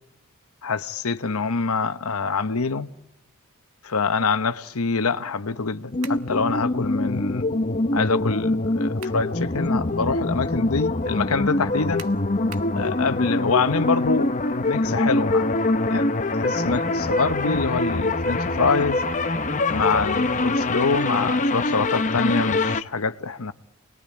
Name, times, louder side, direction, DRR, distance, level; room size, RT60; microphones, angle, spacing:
voice 1, 0.6-2.9 3.8-7.5 7.9-12.1 12.7-15.5 15.9-19.0 19.7-23.5, left 4 dB, 80° left, 1.0 m, -25 dB
sound 1, 5.9-22.8, left 2 dB, 35° left, 0.9 m, -24 dB
sound 2, 6.0-6.3 8.7-9.3 9.8-9.9 12.0-12.8, right 8 dB, 85° right, 1.3 m, -42 dB
29.0 x 21.5 x 8.6 m
head